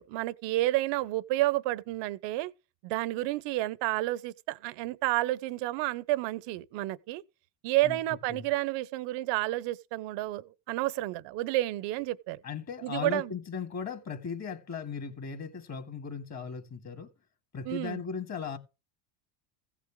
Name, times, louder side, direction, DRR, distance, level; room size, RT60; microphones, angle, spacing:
voice 1, 0.0-2.5 2.8-7.2 7.6-12.4 12.8-13.3 17.7-18.0, right 17 dB, 60° right, 0.9 m, -30 dB
voice 2, 12.4-17.1 17.5-18.6, left 6 dB, 30° left, 2.2 m, -37 dB
15.5 x 8.3 x 3.7 m
supercardioid pair, 105°, 49 cm